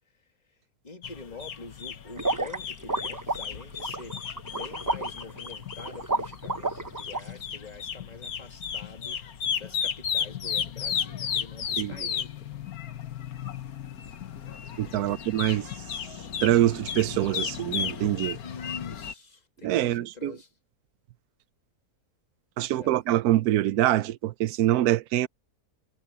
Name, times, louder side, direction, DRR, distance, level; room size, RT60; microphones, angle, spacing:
voice 1, 0.8-9.2 9.6-12.5 14.8-15.2 18.4-20.5 22.7-23.0, left 4 dB, 25° left, 2.1 m, -45 dB
sound 1, 1.0-19.1, left 8 dB, 70° left, 1.6 m, -34 dB
sound 2, 2.2-7.2, right 2 dB, 15° right, 0.7 m, -31 dB
voice 2, 11.8-12.1 14.8-15.7 16.4-18.4 19.6-20.3 22.6-25.3, right 14 dB, 75° right, 1.1 m, -24 dB
omnidirectional pair, 1.7 m